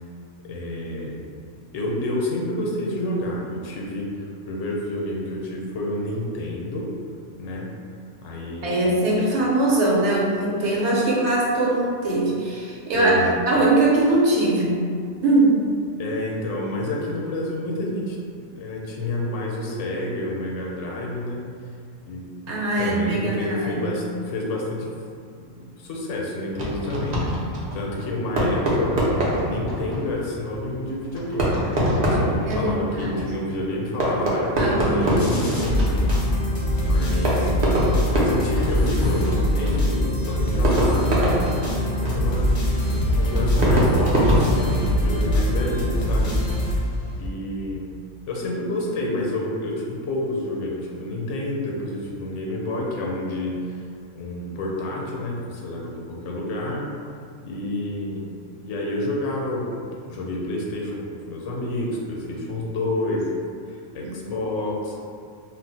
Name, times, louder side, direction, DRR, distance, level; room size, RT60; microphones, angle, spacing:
voice 1, 0.4-1.2 1.7-6.8 7.4-7.7 8.2-8.9 12.9-13.3 16.0-21.4 22.1-24.9 25.4-28.9 29.4-36.0 36.8-37.5 38.1-42.5 43.0-46.3 47.2-47.9 48.3-53.8 54.1-56.9 57.4-58.2 58.5-63.3 63.7-65.0, left 1 dB, 75° left, -2 dB, 0.9 m, -29 dB
voice 2, 8.6-14.7 15.2-15.6 22.5-23.8 32.5-33.2 34.6-35.3 64.0-64.1, right 2 dB, 70° right, -5 dB, 0.9 m, -21 dB
Fireworks, 26.5-45.3, equal, 45° right, 0.6 m, -25 dB
sound 1, 35.2-47.3, left 1 dB, 45° left, 0.4 m, -23 dB
2.4 x 2.0 x 3.9 m, 2.3 s
omnidirectional pair, 1.3 m